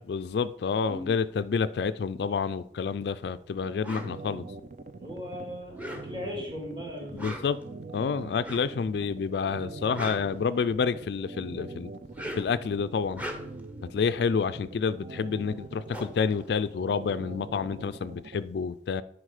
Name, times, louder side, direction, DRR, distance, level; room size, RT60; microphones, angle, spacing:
voice 1, 0.1-4.4 7.1-7.6 7.9-11.9 12.4-13.2 13.9-19.0, left 5 dB, 65° left, 14 dB, 0.3 m, -29 dB
sound 1, 3.6-18.4, right 3 dB, 40° right, 0.5 m, -43 dB
sound 2, 3.8-4.1 5.6-6.4 7.0-7.6 8.4-8.8 9.7-11.0 12.0-12.6 13.0-13.7 15.2-15.3 15.6-17.3, equal, 10° right, 0.9 m, -40 dB
voice 2, 5.0-7.5, equal, 25° right, 0 dB, 2.3 m, -38 dB
9.9 x 4.9 x 4.9 m, 0.75 s
head